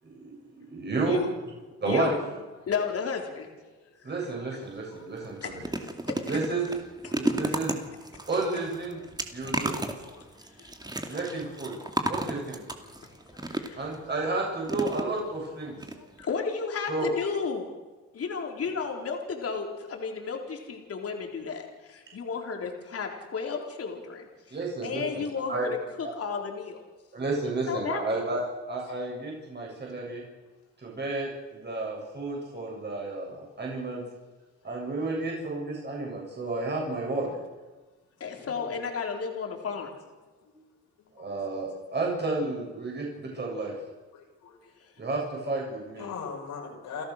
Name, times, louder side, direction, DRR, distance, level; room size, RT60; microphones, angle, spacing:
voice 1, 0.0-1.3 1.8-2.2 4.0-5.6 6.3-6.7 7.0-7.8 8.3-9.0 9.3-9.8 11.1-11.7 12.1-12.6 13.7-15.8 16.9-17.1 24.5-25.7 26.0-26.1 27.1-28.4 28.7-30.2 30.8-34.0 34.6-37.3 41.2-43.7 45.0-46.1, right 3 dB, 35° right, -2 dB, 7.6 m, -31 dB
voice 2, 1.0-1.3 1.9-2.2 2.7-3.5 4.0-4.1 4.5-4.6 5.4-6.2 7.0-7.4 10.5-11.2 13.4-13.9 16.2-17.7 18.1-24.6 24.8-26.8 27.7-28.3 38.2-39.9 44.8-44.9 46.0-46.2, left 5 dB, 50° left, 2 dB, 4.0 m, -33 dB
sound 1, 4.6-4.8 5.2-14.0 14.7-15.5 15.8-15.9 16.2-16.3, right 1 dB, 15° right, 2.4 m, -33 dB
voice 3, 44.1-44.5 46.0-47.0, left 6 dB, 80° left, 0 dB, 6.5 m, -39 dB
30.0 x 13.5 x 6.6 m, 1.2 s
cardioid pair, 90°, 30 cm